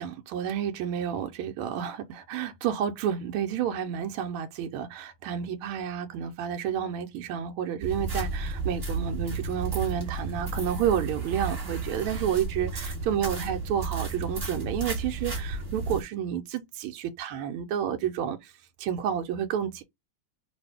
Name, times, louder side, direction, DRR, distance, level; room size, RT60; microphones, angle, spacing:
voice 1, 0.0-18.5 18.8-19.8, right 9 dB, 85° right, 1.5 m, -30 dB
sound 1, 7.8-16.0, right 3 dB, 30° right, 1.6 m, -33 dB
3.4 x 2.5 x 3.3 m
omnidirectional pair, 2.3 m